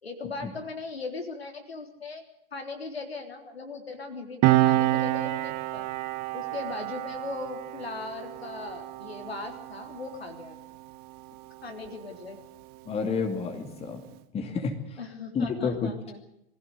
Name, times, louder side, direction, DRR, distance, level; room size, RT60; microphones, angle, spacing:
voice 1, 0.0-2.2 2.5-5.9 6.3-10.6 11.6-12.4 15.0-16.2, left 3 dB, 75° left, 4 dB, 3.9 m, -38 dB
Piano, 4.4-11.4 11.7-11.9, right 16 dB, 30° right, 1.0 m, -28 dB
voice 2, 12.9-14.0 14.3-14.7 15.3-15.9, left 5 dB, 20° left, 5 dB, 2.6 m, -29 dB
22.5 x 16.0 x 8.0 m, 0.79 s
figure-of-eight pair, 100°, 31 cm